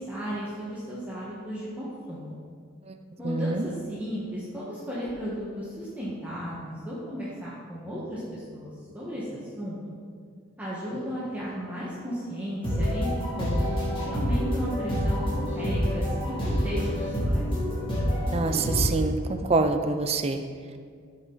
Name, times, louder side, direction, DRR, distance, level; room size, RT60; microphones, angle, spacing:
voice 1, 0.0-2.3 3.2-9.8 10.6-13.1 13.4-13.6 14.0-17.5, equal, 10° right, -8 dB, 1.4 m, -35 dB
voice 2, 3.2-3.7 18.3-20.4, right 3 dB, 30° right, 8 dB, 0.4 m, -26 dB
sound 1, 12.6-18.9, equal, 25° left, 2.6 m, -27 dB
14.0 x 5.7 x 4.0 m, 2.1 s
head